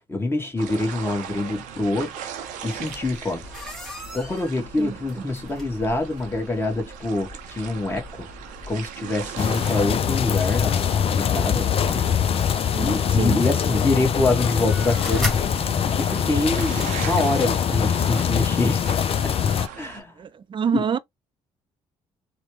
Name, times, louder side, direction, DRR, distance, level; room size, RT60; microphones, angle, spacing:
voice 1, 0.1-2.1 2.6-3.4 4.1-8.3 8.7-12.1 12.8-15.3 16.0-18.9 19.2-20.1 20.7-20.9, left 2 dB, 15° left, 1.3 m, -26 dB
sound 1, 0.6-20.0, right 8 dB, 80° right, 0.6 m, -39 dB
sound 2, 2.8-16.4, left 1 dB, ahead, 1.5 m, -39 dB
sound 3, 9.4-19.7, left 8 dB, 50° left, 0.4 m, -23 dB
voice 2, 12.7-13.4 20.2-21.0, right 7 dB, 40° right, 0.5 m, -26 dB
3.1 x 2.2 x 3.1 m
supercardioid pair, 60°, 13 cm